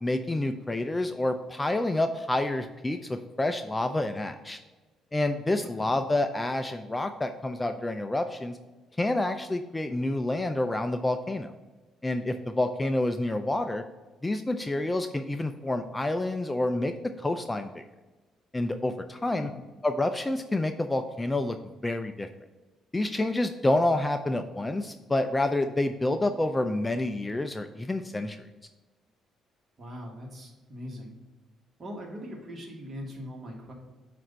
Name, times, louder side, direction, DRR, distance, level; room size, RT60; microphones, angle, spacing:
voice 1, 0.0-4.6 5.1-8.6 9.0-11.5 12.0-13.8 14.2-17.8 18.5-19.5 19.8-21.6 21.8-22.3 22.9-28.4, left 2 dB, 15° left, 7 dB, 0.3 m, -28 dB
voice 2, 5.6-5.9 19.4-19.6 29.8-31.2 31.8-33.7, equal, 40° right, 0 dB, 1.5 m, -41 dB
7.4 x 2.5 x 5.3 m, 1.2 s
cardioid pair, 100°, 0 cm